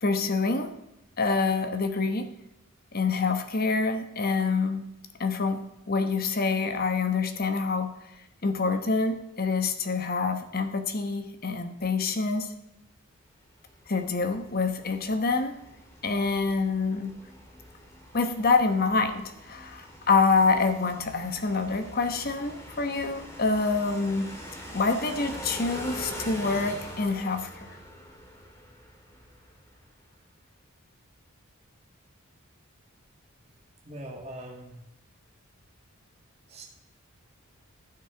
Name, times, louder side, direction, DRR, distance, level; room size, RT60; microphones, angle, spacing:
voice 1, 0.0-0.8 1.2-2.3 2.9-4.8 5.2-7.9 8.4-12.5 13.9-15.5 16.0-17.1 18.1-24.3 24.7-27.7, left 4 dB, 40° left, 8 dB, 1.0 m, -26 dB
sound 1, 13.7-29.8, equal, 15° left, 1.9 m, -43 dB
voice 2, 33.9-34.8 36.5-36.6, right 1 dB, 30° right, 0 dB, 1.9 m, -41 dB
16.0 x 6.4 x 3.8 m, 0.88 s
head